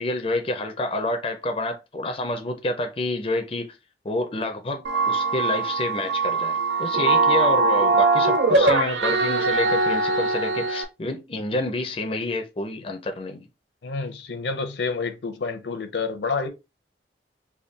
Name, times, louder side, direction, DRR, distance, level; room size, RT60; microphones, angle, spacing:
voice 1, 0.0-3.7 4.0-13.4, left 2 dB, 30° left, 0.5 m, -28 dB
sound 1, 4.8-10.8, right 3 dB, 85° right, 0.6 m, -21 dB
voice 2, 13.8-16.5, left 4 dB, 80° left, 0.7 m, -28 dB
3.5 x 2.3 x 3.8 m
head